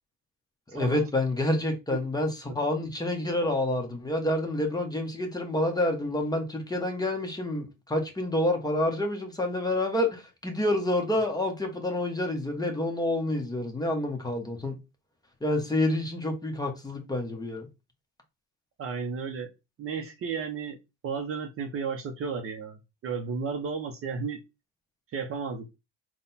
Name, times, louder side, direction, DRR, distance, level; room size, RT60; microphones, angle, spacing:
voice 1, 0.7-14.7 15.4-17.7, left 1 dB, 10° left, 0.9 m, -28 dB
voice 2, 18.8-19.5 19.8-20.8 21.0-24.4 25.1-25.8, right 5 dB, 35° right, 0.6 m, -33 dB
3.9 x 2.2 x 4.0 m
supercardioid pair, 115°, 38 cm